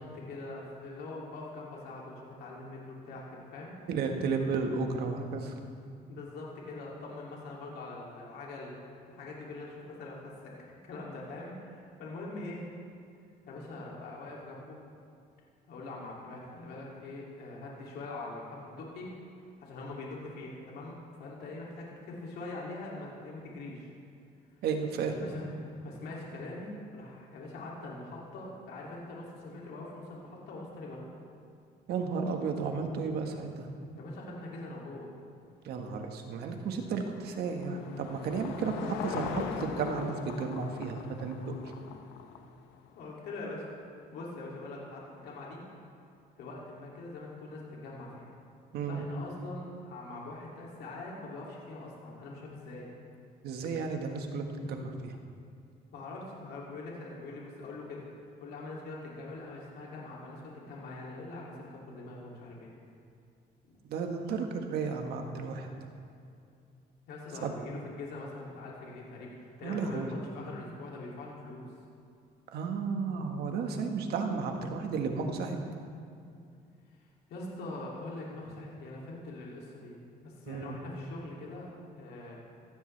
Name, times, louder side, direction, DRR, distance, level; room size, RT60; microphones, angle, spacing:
voice 1, 0.0-3.7 6.1-8.7 9.1-12.6 13.5-14.8 15.7-19.1 19.6-20.9 21.2-23.9 25.2-25.5 25.8-31.1 34.0-35.1 38.6-38.8 42.9-43.6 44.1-45.6 46.4-48.3 48.9-52.9 55.9-58.0 58.4-62.7 63.6-63.8 67.1-71.7 76.9-77.0 77.3-79.9 80.2-82.4, left 2 dB, 75° left, -4 dB, 2.7 m, -43 dB
voice 2, 3.9-5.5 24.6-25.3 31.9-33.7 35.6-41.7 48.7-49.0 53.4-55.2 63.9-65.7 67.4-67.5 69.6-70.1 72.5-75.6 80.5-80.8, right 5 dB, 70° right, 4 dB, 1.5 m, -33 dB
Car passing by / Engine, 36.5-43.0, left 7 dB, 90° left, 0.8 m, -41 dB
15.0 x 14.5 x 3.3 m, 2.5 s
cardioid pair, 110°, 17 cm